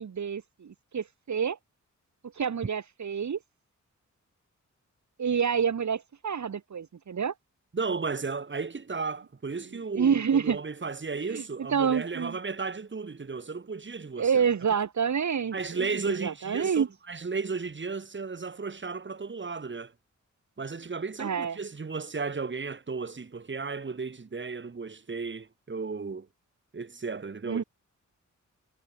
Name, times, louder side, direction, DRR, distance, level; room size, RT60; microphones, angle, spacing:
voice 1, 0.0-1.6 2.4-3.4 5.2-7.3 10.0-10.6 11.3-11.4 11.7-12.4 14.2-16.9 21.2-21.6 27.5-27.6, right 7 dB, 70° right, 5.9 m, -28 dB
voice 2, 7.7-14.4 15.5-19.9 20.6-26.3 26.7-27.6, right 4 dB, 40° right, 6.6 m, -34 dB
wide cardioid pair, 130°, 30 cm